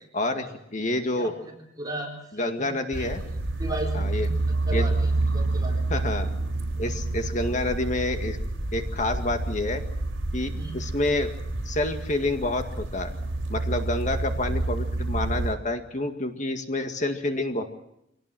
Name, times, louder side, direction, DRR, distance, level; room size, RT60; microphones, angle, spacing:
voice 1, 0.1-1.3 2.3-3.2 3.9-4.3 4.7-4.9 5.9-6.3 6.8-8.4 8.7-9.8 10.3-11.3 11.7-13.1 13.5-17.6, left 2 dB, 40° left, 6 dB, 2.0 m, -28 dB
voice 2, 1.2-2.1 2.9-3.1 3.6-4.4 4.7-5.1 5.3-5.8 6.7-6.9 10.5-10.7, right 1 dB, 20° right, 0 dB, 4.0 m, -36 dB
sound 1, 2.9-15.5, right 2 dB, 75° right, 4.7 m, -28 dB
26.0 x 18.0 x 7.7 m, 0.80 s
head